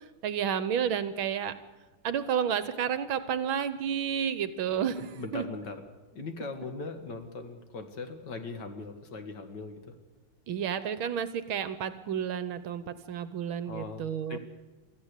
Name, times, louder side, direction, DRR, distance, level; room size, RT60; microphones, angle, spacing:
voice 1, 0.2-1.5 2.0-5.0 5.3-5.4 10.5-14.4, right 8 dB, 70° right, 13 dB, 1.7 m, -31 dB
voice 2, 5.0-10.0 13.7-14.4, left 3 dB, 55° left, 7 dB, 2.3 m, -40 dB
24.5 x 14.0 x 8.3 m, 1.2 s
omnidirectional pair, 2.4 m